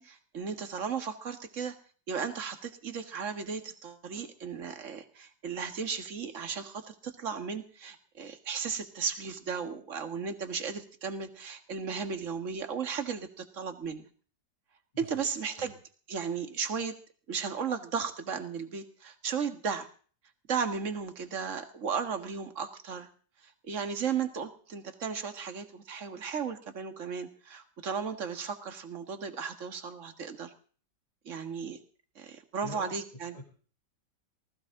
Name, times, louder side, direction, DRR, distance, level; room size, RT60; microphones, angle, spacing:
voice 1, 0.0-1.8 2.1-14.0 15.0-15.8 16.1-17.0 17.3-19.9 20.5-23.1 23.4-30.5 31.3-31.8 32.2-33.4, right 6 dB, 45° right, 8 dB, 2.0 m, -35 dB
voice 2, 32.6-32.9 33.3-33.5, left 1 dB, 20° left, -1 dB, 3.0 m, -44 dB
20.0 x 18.0 x 3.8 m, 0.42 s
omnidirectional pair, 1.9 m